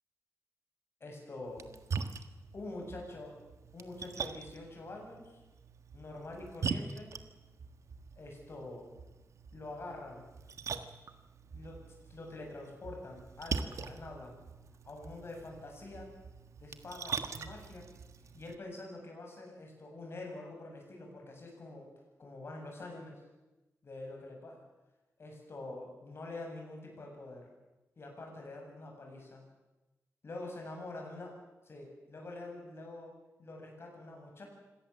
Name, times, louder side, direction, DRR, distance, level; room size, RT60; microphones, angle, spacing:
voice 1, 1.0-1.7 2.5-3.4 3.7-5.4 5.9-7.1 8.2-8.9 9.5-10.2 11.5-14.3 14.8-16.1 16.6-17.9 18.3-21.9 22.2-23.2 23.8-24.6 25.2-27.5 28.0-29.4 30.2-31.3 31.7-33.1 33.4-34.4, left 2 dB, 50° left, 1 dB, 7.4 m, -46 dB
Splash splatter, 1.4-18.5, right 5 dB, 65° right, 1.4 m, -43 dB
26.0 x 18.0 x 7.4 m, 1.1 s
wide cardioid pair, 110°, 6 cm